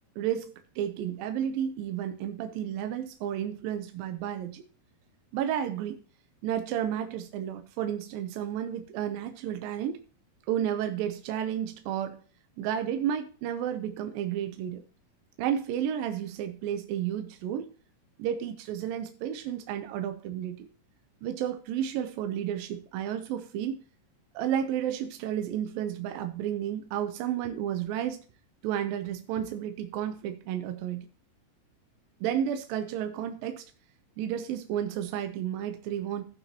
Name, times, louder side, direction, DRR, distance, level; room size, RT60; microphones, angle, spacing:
voice 1, 0.2-4.6 5.3-6.0 6.4-10.0 10.5-12.2 12.6-14.8 15.4-17.7 18.2-20.7 21.2-23.8 24.3-28.2 28.6-31.1 32.2-33.7 34.2-36.3, right 10 dB, 80° right, 2.5 m, -32 dB
16.5 x 5.9 x 2.9 m
omnidirectional pair, 4.1 m